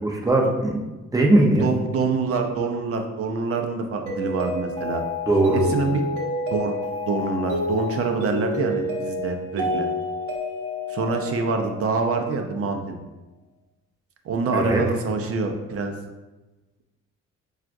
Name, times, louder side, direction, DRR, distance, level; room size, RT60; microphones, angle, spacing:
voice 1, 0.0-0.8 1.1-1.7 5.3-5.7 14.5-14.8, right 2 dB, 10° right, 0 dB, 0.7 m, -19 dB
voice 2, 1.6-5.0 5.5-6.0 6.5-6.8 7.1-9.9 10.9-13.0 14.2-15.9, right 4 dB, 50° right, 4 dB, 0.6 m, -26 dB
Mallet percussion, 4.1-12.2, left 1 dB, 80° right, 0.8 m, -29 dB
5.6 x 2.4 x 2.5 m, 1.1 s
cardioid pair, 90°, 30 cm